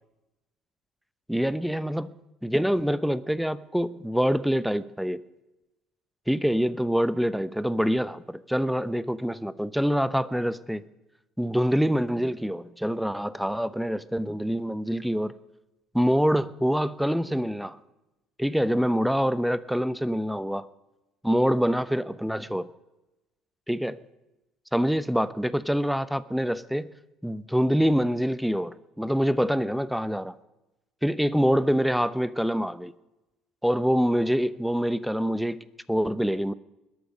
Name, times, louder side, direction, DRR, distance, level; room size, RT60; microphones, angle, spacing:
voice 1, 1.3-2.1 2.4-5.2 6.3-10.8 11.4-15.3 15.9-17.8 18.4-20.6 21.2-22.7 23.7-24.0 24.7-26.9 27.2-30.3 31.0-32.9 33.6-35.6 35.9-36.5, equal, ahead, 16 dB, 0.9 m, -25 dB
21.0 x 12.0 x 5.3 m, 0.97 s
hypercardioid pair, 65°, 0 cm